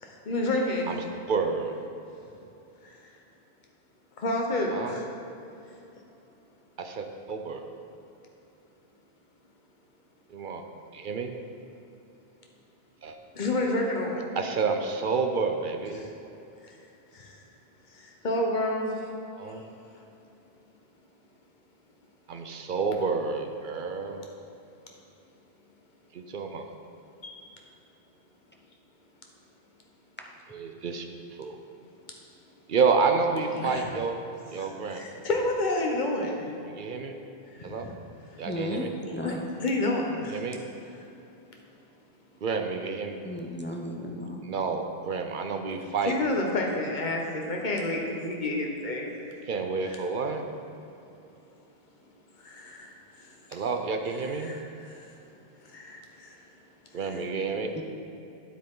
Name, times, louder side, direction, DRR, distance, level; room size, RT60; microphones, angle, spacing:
voice 1, 0.0-0.9 4.2-5.1 13.3-14.2 15.9-16.1 16.6-16.8 17.1-17.3 17.9-19.0 27.2-27.4 33.5-33.9 34.5-36.5 37.5-37.9 38.3-38.8 39.1-40.4 41.0-41.1 46.1-49.2 49.8-50.0 52.4-53.3 54.4-55.1 55.7-56.4 57.0-57.3, left 1 dB, 50° left, 0 dB, 1.2 m, -30 dB
voice 2, 1.3-1.7 4.7-5.0 6.8-7.6 10.3-10.6 10.9-11.4 13.0-13.2 14.4-16.1 19.4-19.6 22.3-24.3 26.1-26.6 30.5-31.1 31.4-31.6 32.7-34.2 34.5-35.0 36.7-37.1 37.6-37.9 38.4-38.9 40.3-40.6 42.4-43.2 44.5-46.1 49.5-50.5 53.5-54.5 56.9-57.7, right 4 dB, 55° right, 5 dB, 0.8 m, -29 dB
voice 3, 38.4-38.9 39.1-39.4 43.2-44.4 57.7-57.8, left 1 dB, 15° left, 0 dB, 0.6 m, -34 dB
9.2 x 8.3 x 3.8 m, 2.9 s
omnidirectional pair, 1.0 m